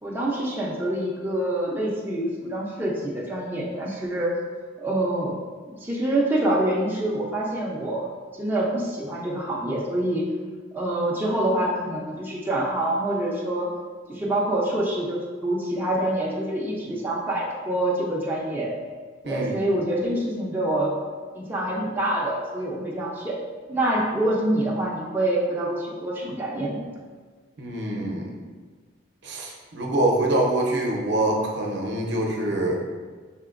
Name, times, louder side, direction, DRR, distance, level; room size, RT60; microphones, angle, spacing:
voice 1, 0.0-4.3 4.8-5.3 5.7-8.1 8.4-10.3 10.7-13.7 14.1-18.7 19.2-21.0 21.3-23.4 23.7-26.8, right 1 dB, 10° right, -5 dB, 0.5 m, -26 dB
voice 2, 27.6-28.3 29.2-32.8, right 1 dB, 55° right, 0 dB, 0.7 m, -25 dB
5.7 x 3.7 x 2.5 m, 1.5 s
head